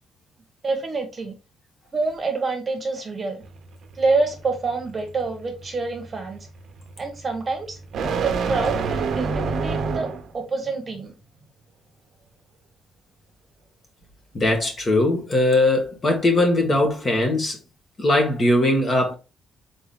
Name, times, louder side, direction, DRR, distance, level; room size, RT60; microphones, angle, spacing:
voice 1, 0.6-1.3 1.9-3.4 3.9-6.4 7.0-7.8 8.2-10.1 10.3-11.1, right 3 dB, 30° right, 1.1 m, -26 dB
sound 1, 3.4-10.4, right 4 dB, 60° right, 0.8 m, -29 dB
voice 2, 14.3-17.6 18.0-19.1, left 1 dB, 30° left, 1.5 m, -20 dB
4.2 x 3.5 x 3.5 m
cardioid pair, 130°, 0 cm